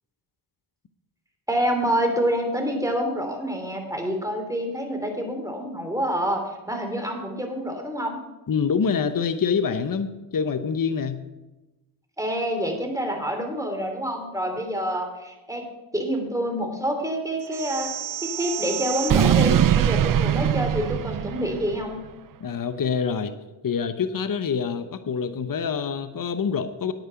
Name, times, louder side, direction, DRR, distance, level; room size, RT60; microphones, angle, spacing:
voice 1, 1.5-8.2 12.2-15.6 15.9-17.9 18.3-22.0, equal, 5° right, 3 dB, 3.2 m, -27 dB
voice 2, 8.5-11.2 22.4-23.3 23.6-26.9, left 6 dB, 45° left, 10 dB, 0.9 m, -26 dB
sound 1, 17.5-21.8, right 10 dB, 45° right, 0.5 m, -23 dB
9.4 x 9.1 x 5.8 m, 1.1 s
supercardioid pair, 40°, 48 cm